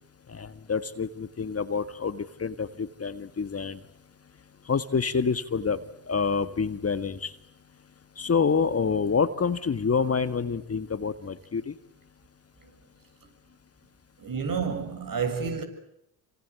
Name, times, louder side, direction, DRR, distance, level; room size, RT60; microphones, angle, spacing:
voice 1, 0.3-3.8 4.7-5.8 6.1-7.3 8.2-11.7, left 5 dB, 30° left, 1.8 m, -27 dB
voice 2, 14.2-15.6, right 6 dB, 45° right, 7.5 m, -29 dB
28.5 x 25.0 x 8.4 m
hypercardioid pair, 65°, 47 cm